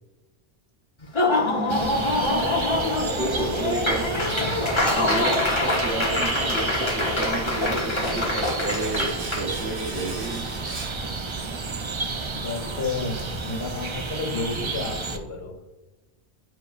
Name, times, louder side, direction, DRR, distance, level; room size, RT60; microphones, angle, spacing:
Laughter / Applause, 1.0-9.4, left 2 dB, 30° left, 1.0 m, -25 dB
sound 1, 1.7-15.2, right 3 dB, 40° right, 0.4 m, -31 dB
voice 1, 2.2-4.5 4.8-10.5, right 2 dB, 75° right, -4 dB, 1.3 m, -32 dB
Domestic sounds home sounds, 7.9-11.7 11.9-12.1, right 3 dB, 55° right, 1.2 m, -40 dB
voice 2, 12.3-15.6, left 3 dB, 70° left, -1 dB, 2.0 m, -31 dB
10.0 x 4.7 x 2.4 m, 1.1 s
omnidirectional pair, 1.1 m